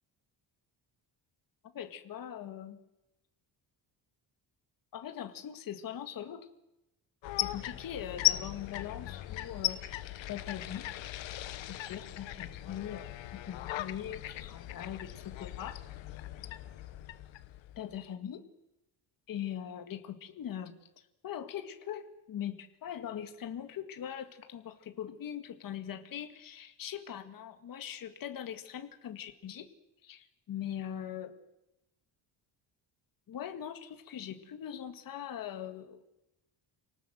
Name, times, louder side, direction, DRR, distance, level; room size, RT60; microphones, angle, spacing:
voice 1, 1.7-2.8 4.9-6.5 7.4-9.8 10.3-10.8 11.7-15.8 17.8-18.4 19.3-29.7 30.0-31.3 33.3-36.0, left 10 dB, 50° left, 8 dB, 1.9 m, -41 dB
sound 1, 7.2-18.1, left 14 dB, 90° left, 1.3 m, -37 dB
28.0 x 18.5 x 7.7 m, 0.92 s
cardioid pair, 175°, 44 cm